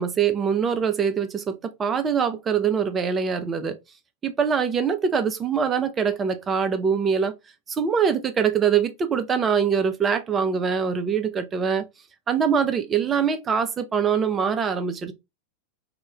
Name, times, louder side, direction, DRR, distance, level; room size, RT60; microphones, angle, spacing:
voice 1, 0.0-3.8 4.2-7.3 7.7-11.9 12.3-15.1, right 6 dB, 20° right, 0.4 m, -23 dB
2.2 x 2.1 x 2.8 m
figure-of-eight pair, 90°, 0 cm